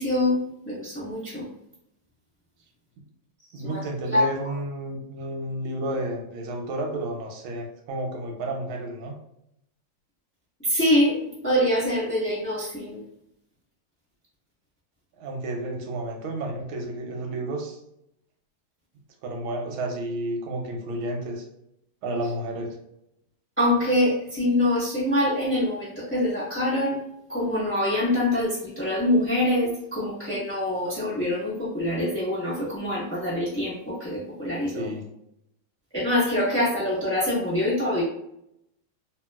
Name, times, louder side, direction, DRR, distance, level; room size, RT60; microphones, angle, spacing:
voice 1, 0.0-1.5 3.6-4.2 10.6-11.2 11.4-13.0 23.6-27.0 27.3-34.9 35.9-38.0, left 1 dB, 10° left, -8 dB, 0.9 m, -25 dB
voice 2, 3.5-9.1 15.2-17.8 19.2-21.4 22.0-22.8 34.7-35.0, right 1 dB, 85° right, 2 dB, 1.5 m, -31 dB
2.9 x 2.8 x 2.2 m, 0.80 s
omnidirectional pair, 2.3 m